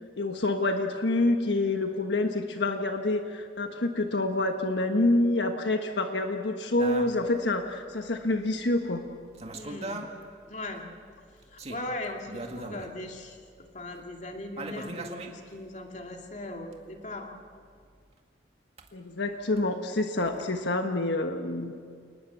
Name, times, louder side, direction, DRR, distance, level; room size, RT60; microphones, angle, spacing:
voice 1, 0.2-9.0 18.9-21.7, left 2 dB, 75° left, 5 dB, 1.3 m, -27 dB
sound 1, 6.8-10.1 10.4-10.5 10.7-15.3 16.0-17.7 17.9-18.0 18.8-18.9 19.5-19.7 20.2-20.4, right 2 dB, 35° right, 2.1 m, -39 dB
voice 2, 9.5-10.1 10.5-10.9 11.5-13.4 13.7-17.4, left 1 dB, 40° left, 2 dB, 2.4 m, -39 dB
29.0 x 20.0 x 8.0 m, 2.1 s
head